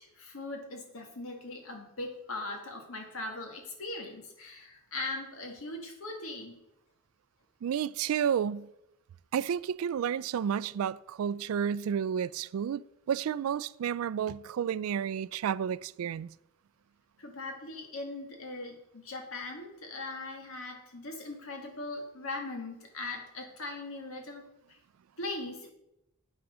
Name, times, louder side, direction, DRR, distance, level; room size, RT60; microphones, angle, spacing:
voice 1, 0.0-6.6 17.2-24.5 25.2-25.7, left 2 dB, 80° left, 2.0 m, -40 dB
voice 2, 7.6-8.7 9.3-12.8 13.1-16.3, right 8 dB, 80° right, 0.3 m, -31 dB
8.4 x 6.0 x 6.1 m
head